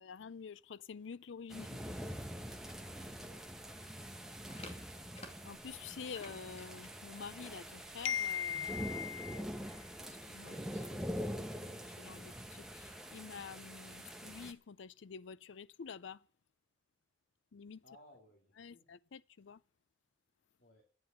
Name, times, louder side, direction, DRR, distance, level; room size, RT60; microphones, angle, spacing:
voice 1, 0.0-1.8 5.4-9.4 10.2-11.1 11.6-16.2 17.5-17.8 18.6-19.6, left 7 dB, 80° left, 0.5 m, -45 dB
sound 1, 1.5-14.5, equal, 5° right, 1.1 m, -45 dB
voice 2, 2.9-4.0 9.3-9.6 17.8-18.9 20.6-20.9, left 1 dB, 55° left, 2.6 m, -62 dB
sound 2, 4.3-9.4, left 2 dB, 35° left, 2.3 m, -57 dB
10.5 x 8.1 x 9.0 m
head